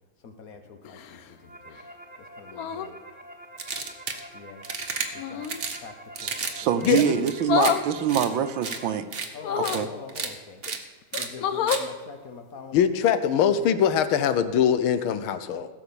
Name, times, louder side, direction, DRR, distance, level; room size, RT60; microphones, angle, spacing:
voice 1, 0.2-1.8 2.2-3.0 4.3-4.6 5.1-6.4 6.6-7.1 8.8-9.0 9.3-10.6 11.2-12.8 13.5-13.7, left 5 dB, 50° left, 7 dB, 1.2 m, -44 dB
sound 1, 0.8-1.3 2.5-2.9 5.2-5.6 7.4-7.9 9.4-9.9 10.7-10.8 11.1-11.9 13.5-13.7, left 8 dB, 65° left, 0.9 m, -28 dB
sound 2, 1.1-9.0, right 1 dB, 5° right, 1.2 m, -47 dB
sound 3, 3.6-4.2 4.6-5.1 5.4-5.8 6.1-6.5 6.8-7.7 8.1-8.3 8.6-8.8 9.1-9.3 9.6-9.8 10.1-10.3 10.6-10.8 11.1-11.3 11.7-11.8, right 5 dB, 35° right, 1.0 m, -32 dB
voice 2, 6.2-9.0 9.6-9.9, right 8 dB, 75° right, 12 dB, 1.4 m, -25 dB
voice 3, 6.8-7.2 12.7-15.7, left 8 dB, 85° left, 11 dB, 1.7 m, -22 dB
16.0 x 7.0 x 7.0 m, 1.3 s
omnidirectional pair, 2.2 m